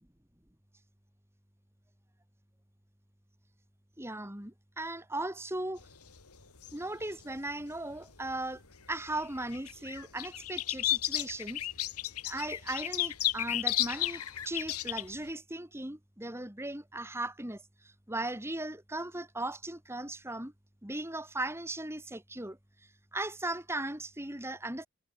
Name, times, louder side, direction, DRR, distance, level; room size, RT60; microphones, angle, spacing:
voice 1, 4.0-5.8 6.7-8.6 8.9-11.6 12.2-20.5 20.8-22.6 23.1-24.9, right 2 dB, 10° right, 2.5 m, -37 dB
sound 1, 5.8-8.3 8.7-15.2, left 14 dB, 85° left, 3.2 m, -34 dB
head